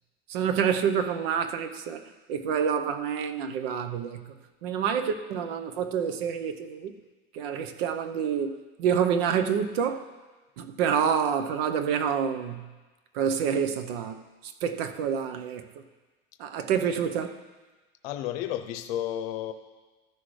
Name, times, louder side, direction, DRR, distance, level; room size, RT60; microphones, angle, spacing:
voice 1, 0.3-2.0 2.3-4.3 4.6-6.9 7.3-10.0 10.6-12.7 13.1-15.6 16.4-17.3, right 7 dB, 85° right, 8 dB, 0.8 m, -28 dB
voice 2, 18.0-19.5, left 11 dB, 80° left, 9 dB, 0.7 m, -32 dB
14.5 x 6.2 x 3.2 m, 1.2 s
cardioid pair, 150°, 29 cm